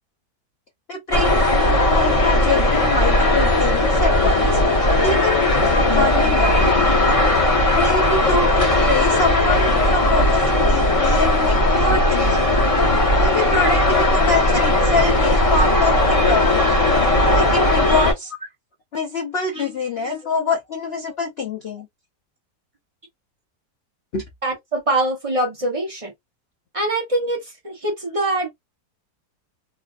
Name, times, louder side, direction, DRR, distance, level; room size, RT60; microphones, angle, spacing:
voice 1, 0.9-1.4 1.7-4.6 5.0-6.7 7.7-12.6 13.2-16.7 17.3-18.3 18.9-21.9 24.1-24.2, left 3 dB, 70° left, 0.6 m, -25 dB
sound 1, 1.1-18.1, left 1 dB, 25° left, 1.1 m, -17 dB
voice 2, 24.4-26.1 26.7-28.5, right 2 dB, 30° right, 0.7 m, -23 dB
3.3 x 2.4 x 2.4 m
omnidirectional pair, 1.8 m